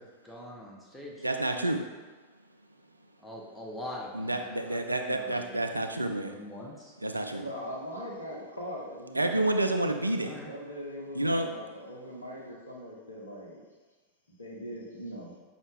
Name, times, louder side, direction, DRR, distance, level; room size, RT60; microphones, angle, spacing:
voice 1, 0.0-1.4 3.2-5.8 6.2-7.0 10.2-10.5, left 1 dB, 10° left, -4 dB, 0.7 m, -44 dB
voice 2, 1.2-1.8 4.1-6.4 7.0-7.4 9.1-10.4 11.1-11.5, right 1 dB, 85° right, 5 dB, 0.3 m, -29 dB
voice 3, 7.4-9.6 10.4-13.6 14.4-15.3, equal, 80° left, -3 dB, 0.9 m, -41 dB
5.4 x 2.4 x 3.2 m, 1.3 s
figure-of-eight pair, 90°, 0 cm